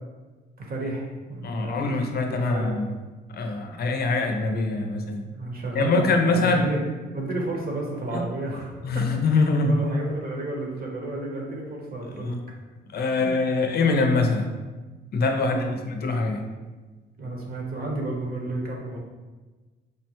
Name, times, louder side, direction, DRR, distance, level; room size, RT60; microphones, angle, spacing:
voice 1, 0.6-2.7 5.3-6.8 7.1-9.0 9.3-12.4 13.0-13.3 15.4-15.7 17.2-19.0, right 2 dB, 50° right, -1 dB, 0.9 m, -32 dB
voice 2, 1.4-2.9 3.3-5.3 5.7-6.6 8.1-8.2 8.8-9.8 12.0-12.4 12.9-14.5 15.1-16.4, left 3 dB, 50° left, 4 dB, 0.5 m, -24 dB
5.0 x 2.1 x 2.9 m, 1.3 s
cardioid pair, 90°, 20 cm